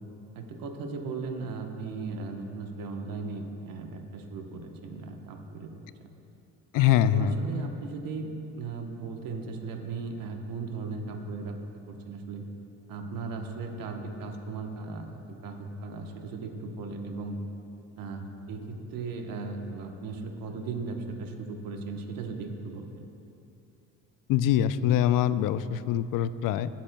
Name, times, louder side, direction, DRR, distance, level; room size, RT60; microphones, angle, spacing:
voice 1, 0.3-6.1 6.8-11.6 11.9-12.5 12.9-17.4 18.0-23.0, right 4 dB, 70° right, 4 dB, 1.1 m, -37 dB
voice 2, 6.7-7.3 24.3-26.7, left 11 dB, 65° left, 14 dB, 0.5 m, -24 dB
17.5 x 7.4 x 2.2 m, 2.7 s
supercardioid pair, 70°, 36 cm